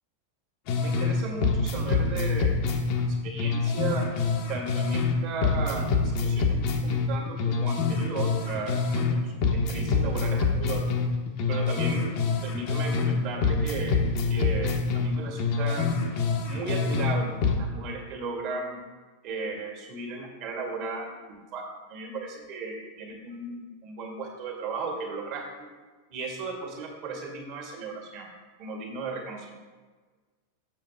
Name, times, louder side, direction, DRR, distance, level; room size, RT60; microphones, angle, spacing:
sound 1, 0.7-1.1 1.4-5.1 5.4-9.1 9.4-13.1 13.4-17.1 17.4-17.6, left 4 dB, 45° left, 0.9 m, -26 dB
voice 1, 0.8-2.6 3.2-4.0 4.5-10.9 11.5-14.0 14.3-15.9 16.4-18.8 19.2-21.1 21.5-21.6 21.9-25.4 26.1-28.3 28.6-29.5, right 3 dB, 45° right, 0 dB, 1.9 m, -35 dB
7.4 x 7.1 x 3.5 m, 1.4 s
figure-of-eight pair, 90°, 0 cm